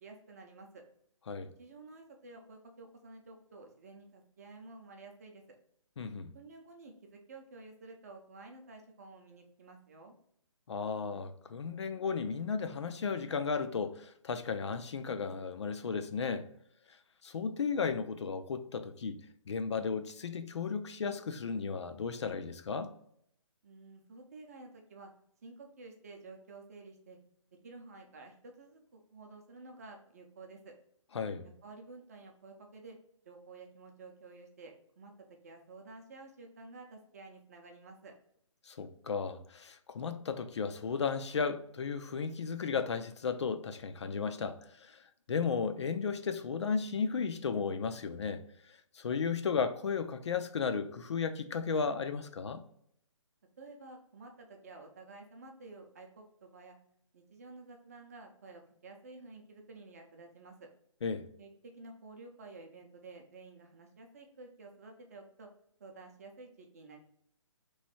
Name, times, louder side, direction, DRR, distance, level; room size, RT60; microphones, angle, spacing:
voice 1, 0.0-0.8 1.6-5.4 6.3-10.1 23.6-25.1 25.4-27.2 27.6-30.7 31.4-33.0 33.2-38.1 53.6-56.8 57.1-60.7 61.4-65.5 65.8-67.0, right 3 dB, 30° right, 0.6 m, -52 dB
voice 2, 6.0-6.3 10.7-16.5 17.2-19.2 19.5-22.9 31.1-31.5 38.7-52.6 61.0-61.2, left 5 dB, 60° left, 0.4 m, -34 dB
3.1 x 2.6 x 4.1 m
hypercardioid pair, 165°, 17 cm